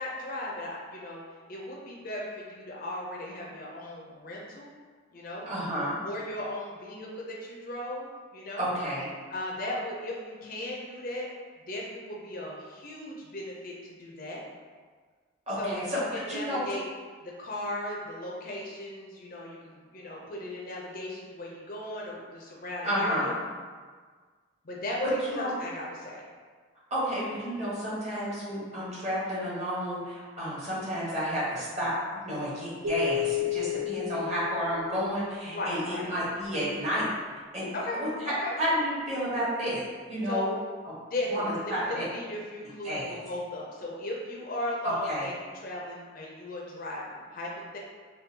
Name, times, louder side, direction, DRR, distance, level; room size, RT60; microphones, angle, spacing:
voice 1, 0.0-4.7 5.1-5.4 6.0-8.7 9.3-11.3 11.7-14.4 15.6-16.8 17.2-23.3 24.6-25.1 25.4-26.2 33.8-34.0 35.5-36.1 37.7-38.6 40.2-40.5 41.0-47.8, left 1 dB, 45° left, -2 dB, 0.4 m, -37 dB
voice 2, 5.4-6.0 8.6-9.1 15.5-16.6 22.8-23.4 25.3-25.5 26.9-31.9 32.2-37.1 37.5-37.7 37.9-38.3 38.6-39.8 40.1-40.5 41.3-42.0 42.8-43.2 44.8-45.2, equal, 35° right, -8 dB, 1.0 m, -31 dB
sound 1, 32.8-35.4, left 9 dB, 85° right, 0.8 m, -32 dB
3.6 x 2.2 x 2.7 m, 1.5 s
head